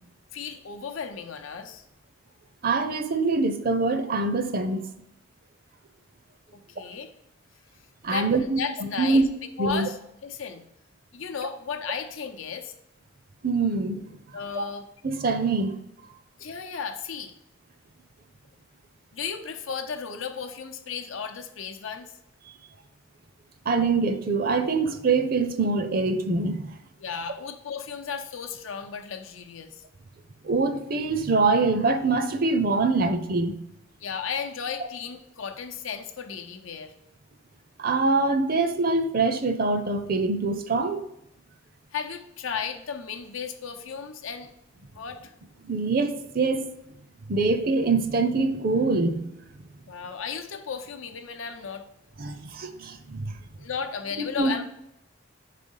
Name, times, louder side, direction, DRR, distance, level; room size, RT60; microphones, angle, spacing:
voice 1, 0.0-1.8 6.8-7.1 8.1-9.2 9.6-10.0 10.2-10.6 11.1-12.7 14.3-14.9 16.4-17.3 19.1-22.1 27.0-29.8 34.0-36.9 41.9-44.5 44.9-45.3 49.9-51.9 53.6-54.6, left 6 dB, 90° left, 0.7 m, -34 dB
voice 2, 2.6-4.8 8.0-9.3 9.6-9.9 13.4-14.0 14.5-14.6 15.0-15.8 23.7-26.8 30.4-33.6 37.8-41.0 45.6-46.6 47.3-49.4 52.2-53.3 54.2-54.5, right 3 dB, 45° right, 0.5 m, -24 dB
5.4 x 4.1 x 5.4 m
head